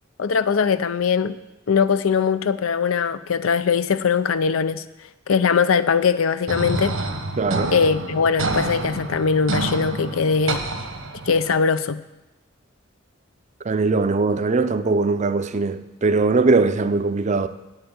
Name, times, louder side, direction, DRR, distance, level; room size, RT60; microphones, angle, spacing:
voice 1, 0.2-1.4 1.7-4.8 5.3-7.0 7.7-10.6 11.3-12.0, left 6 dB, 85° left, 0.5 m, -21 dB
sound 1, 6.5-11.5, right 2 dB, 85° right, 1.3 m, -28 dB
voice 2, 7.4-7.7 13.6-17.5, right 3 dB, 35° right, 0.5 m, -20 dB
8.0 x 8.0 x 8.6 m
head